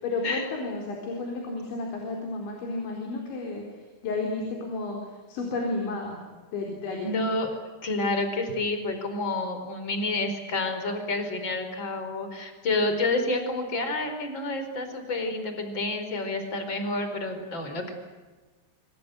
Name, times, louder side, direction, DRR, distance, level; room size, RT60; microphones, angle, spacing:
voice 1, 0.0-6.2 6.5-7.1, left 3 dB, 75° left, 1 dB, 6.4 m, -32 dB
voice 2, 7.0-7.5 7.8-17.9, left 2 dB, 25° left, 7 dB, 4.9 m, -29 dB
27.0 x 27.0 x 8.0 m, 1.3 s
omnidirectional pair, 5.3 m